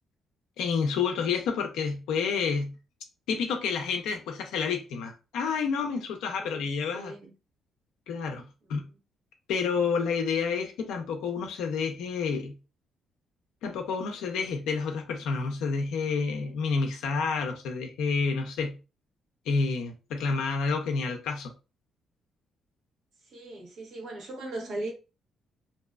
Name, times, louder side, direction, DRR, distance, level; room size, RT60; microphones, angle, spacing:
voice 1, 0.6-2.7 3.3-7.1 8.1-8.8 9.5-12.6 13.6-18.8 19.5-21.5, left 5 dB, 90° left, 0.4 m, -29 dB
voice 2, 6.4-6.7 6.9-7.3 8.6-8.8 23.2-24.9, right 2 dB, 75° right, 1.0 m, -38 dB
2.6 x 2.2 x 2.2 m
cardioid pair, 90°, 0 cm